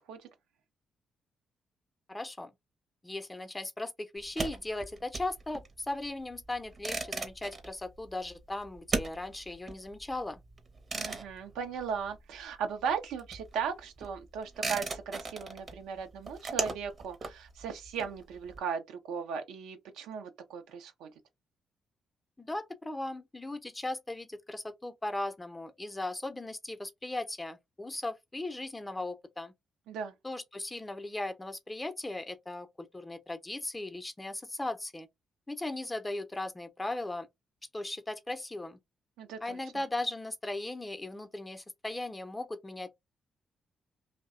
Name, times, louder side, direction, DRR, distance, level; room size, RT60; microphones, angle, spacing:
voice 1, 2.1-2.5 3.0-10.4 22.4-29.5 30.2-35.1 35.5-37.3 37.7-38.8 39.4-42.9, left 2 dB, 20° left, 0.5 m, -38 dB
sound 1, 4.2-12.5 12.8-18.6, right 3 dB, 45° right, 0.7 m, -38 dB
voice 2, 10.9-21.1 29.9-30.1 39.2-39.6, right 6 dB, 80° right, 0.5 m, -37 dB
2.6 x 2.1 x 2.4 m
hypercardioid pair, 50°, 0 cm